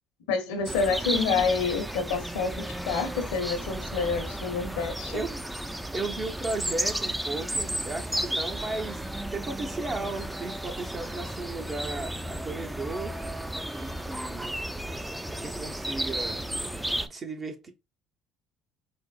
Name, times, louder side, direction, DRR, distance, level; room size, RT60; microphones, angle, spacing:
voice 1, 0.3-5.3, left 5 dB, 80° left, 0.7 m, -28 dB
sound 1, 0.6-17.1, right 1 dB, 5° right, 0.4 m, -33 dB
voice 2, 5.1-5.4 5.9-9.0 9.3-13.1 13.8-14.6 15.2-16.4 17.1-17.7, right 3 dB, 35° right, 0.7 m, -35 dB
4.3 x 2.0 x 2.4 m
hypercardioid pair, 60°, 0 cm